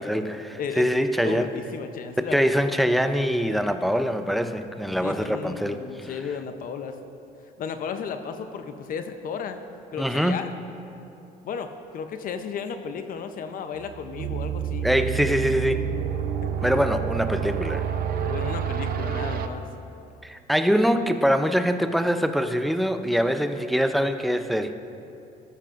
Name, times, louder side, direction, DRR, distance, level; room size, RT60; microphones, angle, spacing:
voice 1, 0.0-1.5 2.3-6.1 10.0-10.5 14.8-15.9 16.6-17.8 20.2-24.7, equal, ahead, 8 dB, 0.5 m, -24 dB
voice 2, 0.6-0.9 1.2-2.8 5.0-7.0 7.6-9.6 9.9-10.5 11.4-14.9 18.1-19.7, left 6 dB, 55° left, 8 dB, 0.7 m, -34 dB
sound 1, 13.7-19.5, right 8 dB, 60° right, 0.6 m, -28 dB
13.5 x 13.5 x 2.5 m, 2.8 s
cardioid pair, 110°, 17 cm